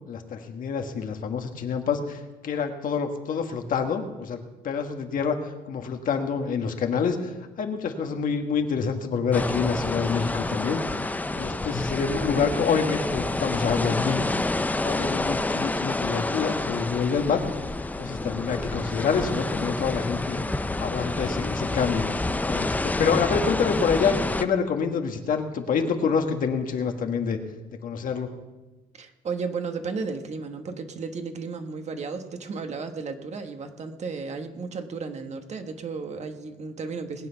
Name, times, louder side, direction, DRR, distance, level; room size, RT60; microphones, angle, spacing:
voice 1, 0.1-4.4 4.6-10.8 11.3-14.2 14.8-17.4 18.0-20.4 20.8-27.4 27.7-28.3, left 6 dB, 55° left, 5 dB, 1.7 m, -27 dB
sound 1, 9.3-24.4, left 2 dB, 10° left, 0.6 m, -28 dB
voice 2, 29.0-37.3, right 4 dB, 40° right, 6 dB, 1.5 m, -34 dB
20.5 x 7.7 x 5.8 m, 1.1 s
cardioid pair, 110°, 17 cm